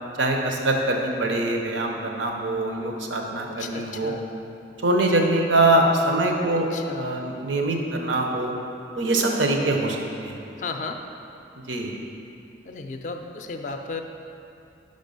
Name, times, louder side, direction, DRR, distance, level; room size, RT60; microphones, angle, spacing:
voice 1, 0.2-4.1 4.8-6.7 6.9-8.5 8.9-10.4 11.7-11.9, right 2 dB, 90° right, 2 dB, 0.7 m, -23 dB
voice 2, 3.6-4.2 6.7-7.2 10.6-11.0 12.6-14.0, left 4 dB, 40° left, 5 dB, 0.3 m, -34 dB
5.5 x 5.3 x 5.3 m, 2.8 s
head